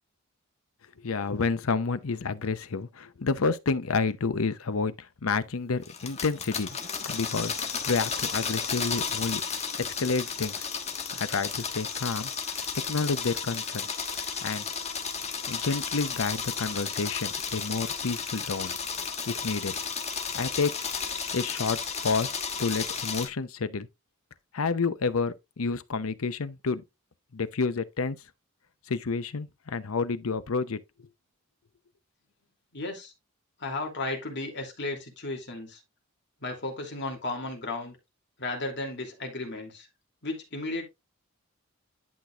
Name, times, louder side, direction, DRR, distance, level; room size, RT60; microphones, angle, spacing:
voice 1, 1.0-6.8 7.1-9.4 9.8-10.7 11.1-12.3 12.9-13.9 14.4-14.7 15.5-18.8 19.3-19.7 20.3-20.7 21.3-21.8 22.0-22.3 22.6-23.9 24.5-26.8 27.3-28.2 28.9-30.8, left 4 dB, 80° left, 0.7 m, -29 dB
sound 1, 5.8-23.3, left 6 dB, 30° left, 1.4 m, -33 dB
voice 2, 32.7-33.1 33.6-35.8 36.4-38.0 38.4-39.9 40.2-40.8, left 2 dB, 55° left, 2.7 m, -34 dB
11.0 x 6.0 x 2.4 m
head